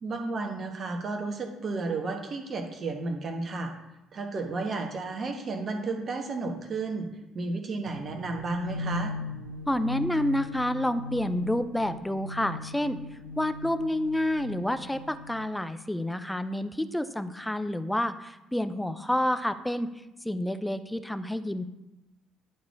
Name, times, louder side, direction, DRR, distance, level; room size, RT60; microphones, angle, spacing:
voice 1, 0.0-3.7 4.1-7.1 7.3-9.1, right 3 dB, 40° right, 3 dB, 1.4 m, -32 dB
sound 1, 7.9-15.6, left 2 dB, 85° right, 1.0 m, -39 dB
voice 2, 9.7-13.0 13.4-19.9 20.2-21.6, left 1 dB, 5° left, 10 dB, 0.7 m, -29 dB
11.0 x 4.1 x 4.7 m, 0.93 s
figure-of-eight pair, 50°, 0 cm